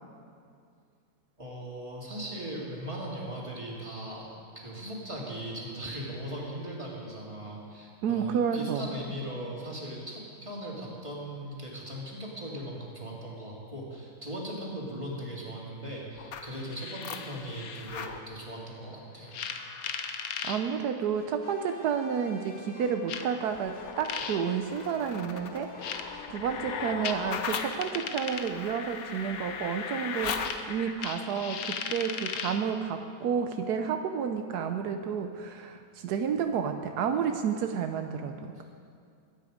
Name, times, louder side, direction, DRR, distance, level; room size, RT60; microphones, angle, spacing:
voice 1, 1.4-4.3 4.5-19.8 38.5-38.6, right 1 dB, 20° right, -4 dB, 2.9 m, -39 dB
voice 2, 8.0-8.9 20.4-26.0 26.3-38.6, right 7 dB, 80° right, 6 dB, 1.3 m, -31 dB
sound 1, 16.2-18.2 19.3-20.6 21.7-21.8 23.1-32.7, left 6 dB, 65° left, 1.3 m, -37 dB
sound 2, 21.1-28.1, left 3 dB, 50° left, 1.4 m, -50 dB
22.5 x 9.5 x 5.1 m, 2.3 s
omnidirectional pair, 1.7 m